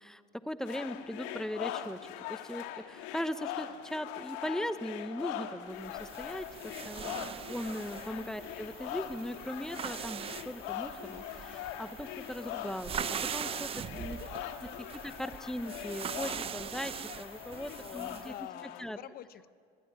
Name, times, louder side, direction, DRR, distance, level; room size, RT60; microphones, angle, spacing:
voice 1, 0.0-14.2 15.0-18.3 18.8-19.0, equal, 5° left, 12 dB, 1.0 m, -39 dB
sound 1, 0.7-18.8, left 12 dB, 75° left, 1.7 m, -42 dB
sound 2, 5.8-18.4, right 8 dB, 30° right, 0.6 m, -42 dB
voice 2, 17.8-19.5, left 12 dB, 50° left, 14 dB, 1.0 m, -47 dB
23.0 x 22.5 x 10.0 m, 2.3 s
supercardioid pair, 120°, 20 cm